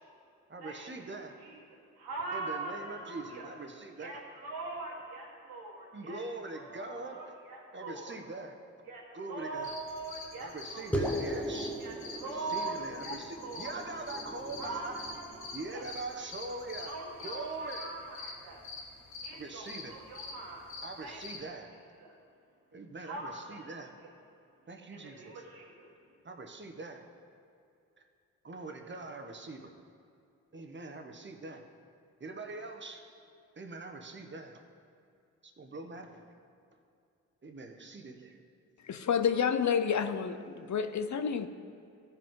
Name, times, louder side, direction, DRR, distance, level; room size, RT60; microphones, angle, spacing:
voice 1, 0.5-1.4 2.3-4.3 5.9-7.3 7.7-8.6 9.1-9.8 10.4-11.8 12.2-15.1 15.5-18.0 19.3-19.9 20.8-21.7 22.7-23.9 24.7-25.4 26.2-27.0 28.0-28.1 28.4-29.7 30.5-31.6 32.2-33.0 33.6-34.6 35.4-36.3 37.4-38.4, right 3 dB, 30° right, 4 dB, 1.2 m, -43 dB
voice 2, 1.4-3.5 4.0-6.2 6.5-8.2 8.9-11.0 11.8-13.8 14.6-15.8 16.2-18.6 19.2-20.7 21.0-21.2 22.0-22.2 23.0-24.1 25.0-25.9, right 3 dB, 80° right, -3 dB, 1.9 m, -42 dB
sound 1, 9.6-21.4, left 3 dB, 80° left, 1.2 m, -46 dB
sound 2, 10.9-15.7, equal, 5° left, 1.4 m, -38 dB
voice 3, 38.8-41.5, left 7 dB, 50° left, 10 dB, 0.7 m, -29 dB
14.5 x 5.2 x 3.8 m, 2.5 s
hypercardioid pair, 40°, 37 cm